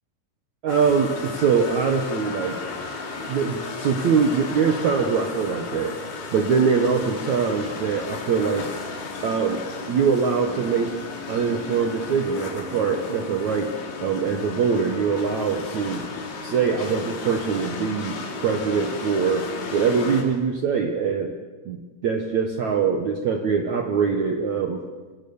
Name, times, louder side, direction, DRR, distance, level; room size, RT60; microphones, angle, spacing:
voice 1, 0.6-2.6 3.3-5.9 6.3-8.7 9.2-9.6 9.9-10.9 11.3-13.7 14.0-16.0 16.4-18.2 18.4-21.3 21.6-24.8, right 6 dB, 80° right, 4 dB, 1.6 m, -23 dB
sound 1, 0.7-20.2, left 4 dB, 75° left, 5.3 m, -34 dB
26.0 x 19.0 x 7.1 m, 1.3 s
omnidirectional pair, 5.4 m